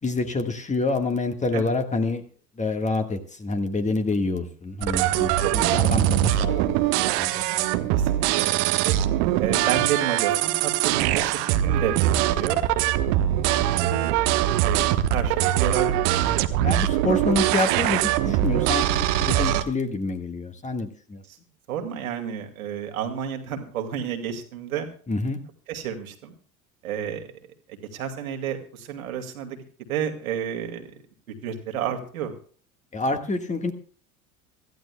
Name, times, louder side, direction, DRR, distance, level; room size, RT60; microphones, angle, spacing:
voice 1, 0.0-2.2 2.6-6.8 7.2-7.7 16.6-21.2 25.1-25.4 32.9-33.7, left 3 dB, 15° left, 6 dB, 1.6 m, -27 dB
sound 1, 4.8-19.6, right 13 dB, 50° right, 1.1 m, -22 dB
voice 2, 7.9-9.0 9.4-12.6 13.5-14.2 14.7-16.5 21.3-21.4 21.7-24.9 25.7-26.3 26.8-27.3 27.7-29.6 29.9-30.9 31.3-32.3, right 8 dB, 70° right, 4 dB, 2.4 m, -31 dB
25.0 x 14.5 x 2.3 m, 0.43 s
figure-of-eight pair, 75°, 44 cm